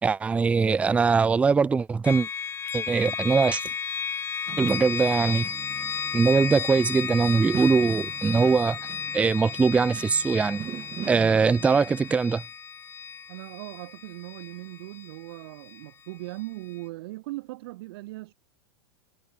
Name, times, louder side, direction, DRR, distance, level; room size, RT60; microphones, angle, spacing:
voice 1, 0.0-2.3 2.7-3.6 4.6-5.5 6.1-8.8 9.1-10.6 11.1-12.4, right 5 dB, 10° right, 0.4 m, -22 dB
sound 1, 2.0-15.9, left 7 dB, 15° left, 0.7 m, -34 dB
sound 2, 4.5-12.2, right 10 dB, 25° right, 1.0 m, -41 dB
voice 2, 13.3-18.3, right 20 dB, 65° right, 4.3 m, -39 dB
supercardioid pair, 130°, 14 cm